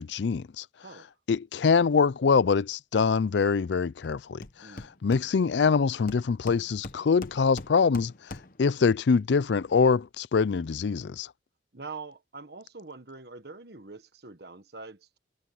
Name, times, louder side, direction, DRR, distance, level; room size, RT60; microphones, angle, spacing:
voice 1, 0.0-0.6 1.3-8.1 8.6-11.3, left 5 dB, 80° left, 0.4 m, -24 dB
Hammer, 4.0-4.1 4.4-5.7 6.1-8.7, left 2 dB, 50° left, 1.1 m, -43 dB
voice 2, 4.6-4.9 11.7-15.2, right 4 dB, 60° right, 1.6 m, -44 dB
head